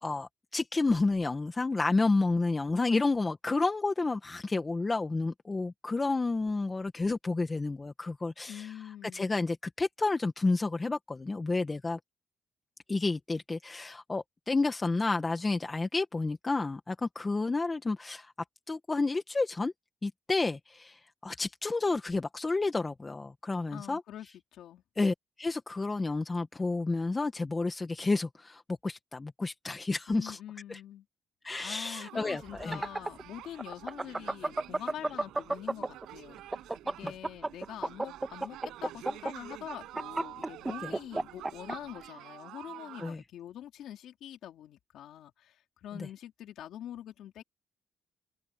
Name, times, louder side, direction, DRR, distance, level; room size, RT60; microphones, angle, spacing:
voice 1, 0.0-8.7 9.0-12.0 12.9-18.3 18.7-19.7 20.0-24.0 25.0-30.4 30.7-30.8 31.4-32.8 37.0-37.1 43.0-43.2, left 3 dB, 25° left, 1.8 m, -30 dB
voice 2, 8.5-9.3 23.7-24.8 30.1-31.1 31.6-47.4, left 11 dB, 80° left, 3.7 m, -45 dB
sound 1, 31.5-43.1, right 14 dB, 90° right, 6.7 m, -48 dB
sound 2, 32.5-36.0 36.4-41.7, right 2 dB, 15° right, 1.6 m, -32 dB
cardioid pair, 90°, 0 cm